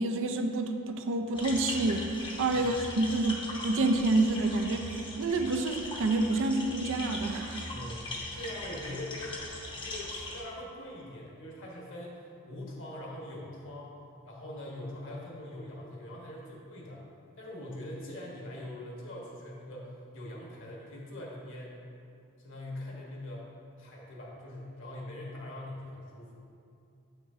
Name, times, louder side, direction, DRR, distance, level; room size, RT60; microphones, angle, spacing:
voice 1, 0.0-7.6, right 2 dB, 60° right, 6 dB, 0.4 m, -28 dB
sound 1, 1.3-10.4, left 2 dB, 20° left, 0.8 m, -40 dB
voice 2, 7.7-9.4 9.8-14.0 14.2-17.0 17.4-21.8 22.4-23.4 23.8-26.4, left 1 dB, 60° left, -3 dB, 1.3 m, -42 dB
7.7 x 6.0 x 2.7 m, 2.6 s
head